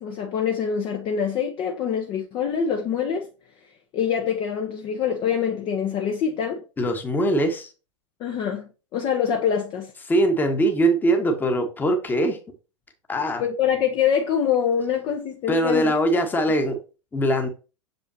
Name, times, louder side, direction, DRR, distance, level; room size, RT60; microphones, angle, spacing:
voice 1, 0.0-3.3 3.9-6.6 8.2-9.9 13.4-15.9, left 8 dB, 30° left, 0.9 m, -25 dB
voice 2, 6.8-7.7 10.1-12.4 13.1-13.4 15.5-16.8 17.1-17.5, right 1 dB, 10° left, 1.2 m, -21 dB
6.9 x 5.3 x 2.8 m
figure-of-eight pair, 95°, 17 cm